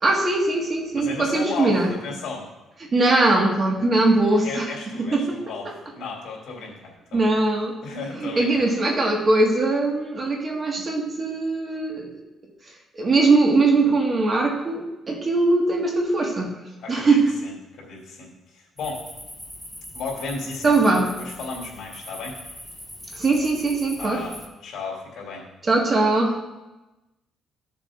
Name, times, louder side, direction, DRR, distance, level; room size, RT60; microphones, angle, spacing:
voice 1, 0.0-1.9 2.9-4.7 5.0-5.4 7.1-7.7 8.2-12.1 12.9-16.6 16.9-17.3 20.6-21.1 23.1-24.2 25.6-26.4, right 2 dB, 30° right, 0 dB, 1.7 m, -21 dB
voice 2, 0.9-2.5 4.4-7.3 7.8-8.7 16.8-19.0 19.9-22.4 24.0-25.5, left 4 dB, 70° left, -3 dB, 3.2 m, -34 dB
sound 1, 18.8-24.5, equal, ahead, 1.6 m, -41 dB
15.0 x 7.1 x 2.5 m, 1.0 s
cardioid pair, 125°, 0 cm